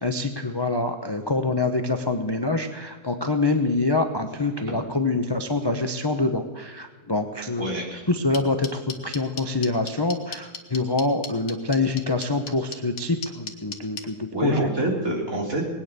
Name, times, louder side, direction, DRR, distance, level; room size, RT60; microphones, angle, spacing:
voice 1, 0.0-7.7 8.1-14.7, left 3 dB, 20° left, 7 dB, 0.6 m, -25 dB
voice 2, 7.6-8.0 14.3-15.7, right 1 dB, 55° right, 0 dB, 3.7 m, -26 dB
sound 1, 8.3-14.0, left 6 dB, 60° left, 1.7 m, -34 dB
20.5 x 9.4 x 6.7 m, 1.4 s
omnidirectional pair, 1.8 m